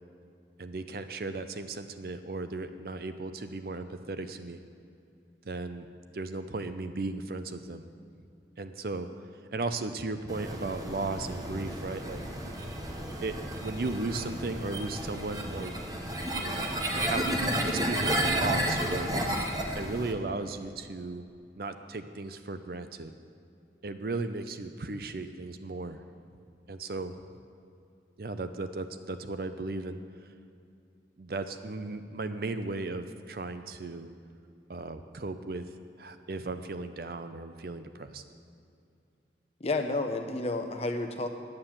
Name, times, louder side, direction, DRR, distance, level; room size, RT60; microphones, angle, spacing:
voice 1, 0.6-4.6 5.4-5.9 6.1-7.8 8.6-9.1 9.5-12.2 13.2-13.4 13.6-15.8 16.3-17.3 17.6-19.2 19.7-21.2 21.6-23.1 23.8-26.0 26.7-27.1 28.2-30.0 31.2-34.1 34.7-35.7 36.0-38.2, right 3 dB, 55° right, 9 dB, 0.6 m, -36 dB
sound 1, 10.3-20.1, right 1 dB, 20° right, 1.0 m, -32 dB
voice 2, 39.6-41.3, left 2 dB, 35° left, 5 dB, 0.8 m, -30 dB
9.6 x 8.9 x 7.3 m, 2.5 s
head